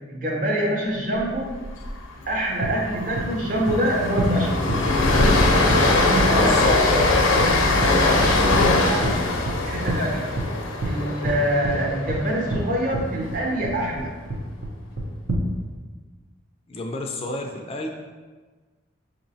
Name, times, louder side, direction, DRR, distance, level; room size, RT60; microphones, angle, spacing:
voice 1, 0.0-1.5 2.3-4.7 5.7-9.2 9.6-10.3 10.8-14.1, right 1 dB, 45° right, -2 dB, 0.7 m, -26 dB
Train, 1.6-1.9 2.2-2.3 2.7-12.8, left 2 dB, 90° left, 0.6 m, -21 dB
sound 1, 2.6-2.7 3.1-3.2 3.7-3.8 4.2-4.3 4.7-4.8 5.2-5.3 5.7-5.8 6.2-6.3 6.6-6.7 7.0-7.1 7.4-7.5 7.8-7.9 8.2-8.7 9.0-9.1 9.4-9.5 9.9-10.0 10.4-10.5 10.8-10.9 11.2-11.3 11.6-11.7 12.1-12.2 12.5-12.6 12.9-13.1 13.3-13.7 14.0-14.1 14.3-14.7 15.0-15.4, right 2 dB, 80° right, 0.7 m, -27 dB
sound 2, 3.6-9.0, left 1 dB, 65° right, 1.1 m, -34 dB
voice 2, 6.4-7.1 16.7-17.9, left 1 dB, 30° left, 2 dB, 0.3 m, -30 dB
5.8 x 2.9 x 2.7 m, 1.4 s
head